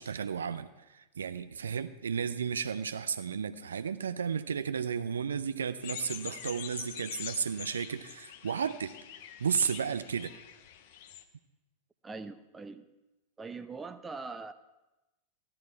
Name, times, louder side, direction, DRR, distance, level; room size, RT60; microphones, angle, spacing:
voice 1, 0.0-8.9 9.4-10.3, right 7 dB, 70° right, 11 dB, 0.5 m, -33 dB
sound 1, 5.8-11.2, left 10 dB, 50° left, 0.9 m, -44 dB
voice 2, 12.0-12.8 13.4-14.5, right 4 dB, 15° right, 11 dB, 0.6 m, -42 dB
14.5 x 12.0 x 4.6 m, 1.0 s
figure-of-eight pair, 90°, 0 cm